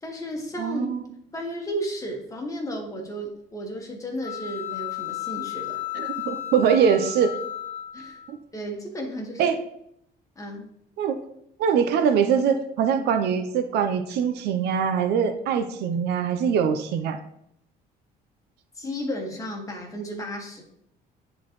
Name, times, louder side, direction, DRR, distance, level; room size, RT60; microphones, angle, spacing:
voice 1, 0.0-0.9 1.3-5.8 7.9-8.2 8.5-9.5 10.3-10.7 18.8-20.6, equal, 20° left, 1 dB, 1.6 m, -33 dB
voice 2, 0.6-1.0 5.9-7.3 8.3-8.4 9.4-9.5 11.0-11.2 11.6-17.2, right 7 dB, 80° right, 8 dB, 0.7 m, -23 dB
sound 1, 4.2-8.3, left 12 dB, 45° left, 1.2 m, -34 dB
10.5 x 4.0 x 3.1 m, 0.74 s
cardioid pair, 110°, 17 cm